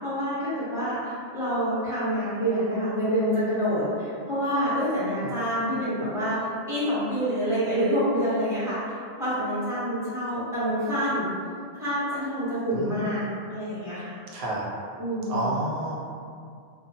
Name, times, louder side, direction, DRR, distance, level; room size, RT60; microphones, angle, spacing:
voice 1, 0.0-11.3 11.7-13.2 13.5-14.1 15.0-15.4, equal, 5° right, -13 dB, 0.8 m, -27 dB
voice 2, 12.7-13.1 14.3-14.6 15.3-15.9, right 1 dB, 75° right, -5 dB, 1.0 m, -30 dB
2.4 x 2.2 x 2.7 m, 2.3 s
omnidirectional pair, 1.3 m